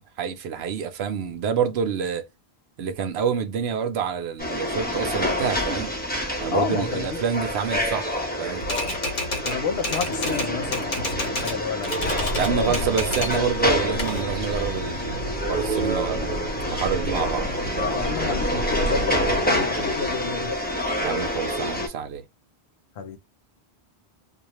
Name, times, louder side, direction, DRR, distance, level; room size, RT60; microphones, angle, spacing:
voice 1, 0.0-2.3 2.8-5.9 6.4-8.7 12.4-17.5 21.0-22.2, right 7 dB, 80° right, 0.9 m, -27 dB
sound 1, 4.4-21.9, equal, 10° left, 0.7 m, -27 dB
voice 2, 6.5-7.2 9.4-12.9 17.9-20.6 23.0-23.2, left 5 dB, 80° left, 0.9 m, -30 dB
Typewriter, 8.6-11.6 11.8-13.4 13.8-14.8, left 1 dB, 50° left, 1.0 m, -30 dB
sound 2, 12.0-19.4, equal, 55° right, 1.0 m, -32 dB
2.4 x 2.3 x 2.9 m
omnidirectional pair, 1.1 m